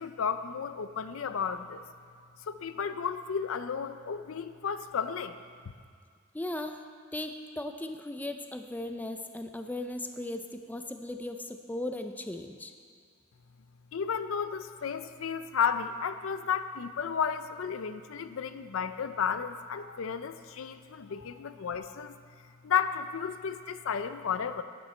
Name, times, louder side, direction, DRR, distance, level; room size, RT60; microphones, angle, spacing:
voice 1, 0.0-1.8 2.4-5.4 13.9-22.2 22.6-24.6, left 7 dB, 70° left, 11 dB, 0.5 m, -33 dB
voice 2, 6.3-6.8 7.1-12.7, left 1 dB, 10° left, 6 dB, 0.4 m, -37 dB
12.0 x 9.3 x 4.4 m, 2.1 s
head